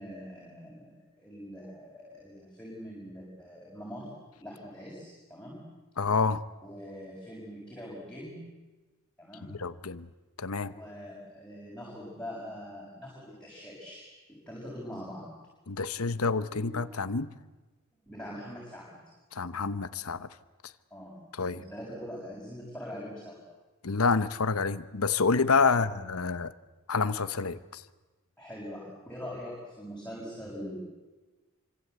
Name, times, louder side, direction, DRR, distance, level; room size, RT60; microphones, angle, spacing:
voice 1, 0.0-5.6 6.6-8.4 9.2-9.6 10.7-14.0 14.5-15.3 16.5-16.7 18.0-19.0 20.9-21.2 21.5-23.4 25.7-25.9 28.4-30.8, equal, 5° left, -5 dB, 7.1 m, -43 dB
voice 2, 6.0-6.4 9.5-10.1 10.4-10.7 15.7-17.3 19.3-20.3 21.3-21.6 23.8-26.5 26.9-27.8, left 4 dB, 85° left, 13 dB, 1.0 m, -28 dB
27.5 x 26.0 x 8.2 m, 1.2 s
head